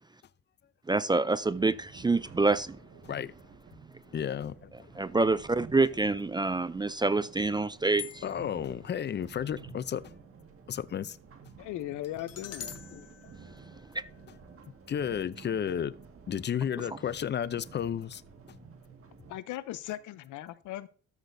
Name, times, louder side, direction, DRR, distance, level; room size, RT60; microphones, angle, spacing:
voice 1, 0.9-2.8 5.0-8.2 13.9-14.0, right 3 dB, 15° right, 0.4 m, -27 dB
sound 1, 1.4-19.4, right 5 dB, 45° right, 1.7 m, -52 dB
voice 2, 4.1-4.7 8.2-10.1 10.7-11.2 12.9-13.1 14.9-16.0 16.3-18.2, left 9 dB, 35° left, 0.5 m, -32 dB
sound 2, 8.0-8.6 12.0-14.3, left 9 dB, 55° left, 1.1 m, -46 dB
voice 3, 11.6-12.7 19.3-20.9, left 14 dB, 85° left, 0.7 m, -38 dB
13.0 x 6.2 x 2.7 m
cardioid pair, 90°, 30 cm